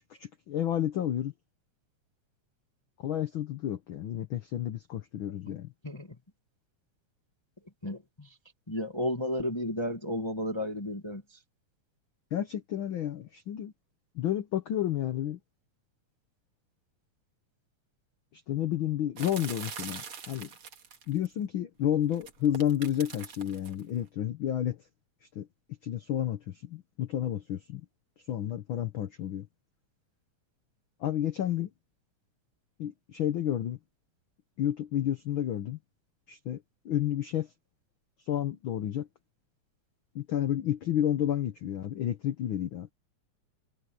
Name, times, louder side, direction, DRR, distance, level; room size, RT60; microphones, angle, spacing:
voice 1, 0.2-1.3 3.0-5.7 12.3-13.7 14.1-15.4 18.3-20.5 21.1-24.8 25.3-25.5 25.8-27.8 28.3-29.5 31.0-31.7 32.8-33.8 34.6-35.8 36.3-37.5 38.3-39.1 40.1-42.9, left 11 dB, 70° left, 1.2 m, -31 dB
voice 2, 5.8-6.2 7.8-8.4 8.7-11.4, left 1 dB, 20° left, 0.7 m, -33 dB
sound 1, 19.2-21.3 22.1-23.8, right 6 dB, 50° right, 2.5 m, -42 dB
omnidirectional pair, 3.4 m